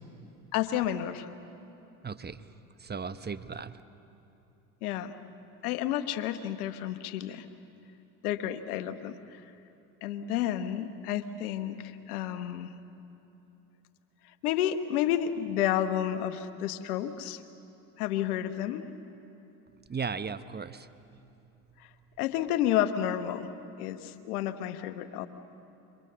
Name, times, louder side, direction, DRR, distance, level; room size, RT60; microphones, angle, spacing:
voice 1, 0.5-1.3 4.8-5.1 5.6-7.4 8.2-9.4 10.0-12.7 14.4-17.4 18.0-18.8 22.2-23.5 23.8-25.3, left 11 dB, 80° left, 11 dB, 1.3 m, -30 dB
voice 2, 2.0-2.4 2.8-3.8 19.9-20.9, right 5 dB, 20° right, 12 dB, 1.0 m, -36 dB
28.5 x 24.5 x 6.9 m, 2.9 s
hypercardioid pair, 65°, 44 cm